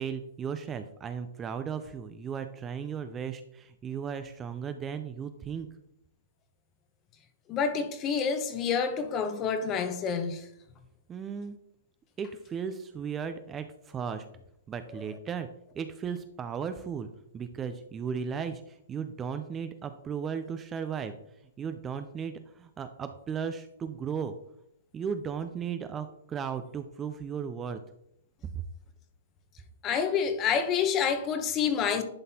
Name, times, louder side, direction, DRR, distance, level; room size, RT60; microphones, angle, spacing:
voice 1, 0.0-5.7 11.1-11.6 12.2-14.3 14.7-15.5 15.7-17.1 17.3-21.2 21.6-24.3 24.9-27.8 28.5-28.6, right 7 dB, 20° right, 0.4 m, -36 dB
voice 2, 7.5-10.5 29.8-32.0, left 6 dB, 25° left, 0.8 m, -28 dB
11.0 x 4.0 x 2.8 m
hypercardioid pair, 140°, 0 cm